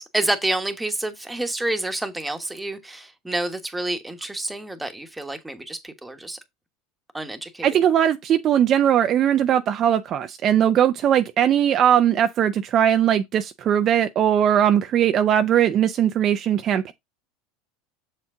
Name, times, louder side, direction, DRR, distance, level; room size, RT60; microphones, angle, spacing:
voice 1, 0.0-6.4 7.1-7.7, right 2 dB, 5° right, 1.2 m, -28 dB
voice 2, 7.6-16.9, right 10 dB, 40° right, 0.5 m, -19 dB
7.0 x 4.4 x 3.7 m
supercardioid pair, 120°, 0 cm